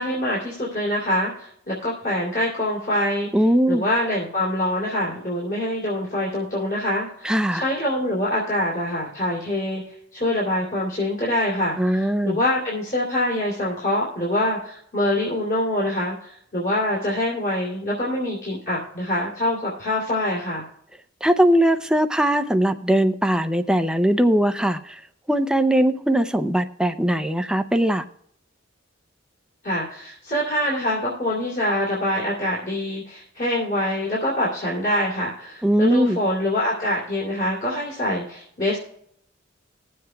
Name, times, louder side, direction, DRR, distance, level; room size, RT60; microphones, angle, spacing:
voice 1, 0.0-3.3 3.7-20.6 29.6-38.8, left 1 dB, 50° left, -5 dB, 2.6 m, -25 dB
voice 2, 3.3-3.8 7.2-7.6 11.8-12.4 21.2-25.0 25.3-28.0 35.6-36.2, right 1 dB, 5° right, 8 dB, 0.4 m, -20 dB
21.0 x 7.6 x 2.2 m, 0.69 s
head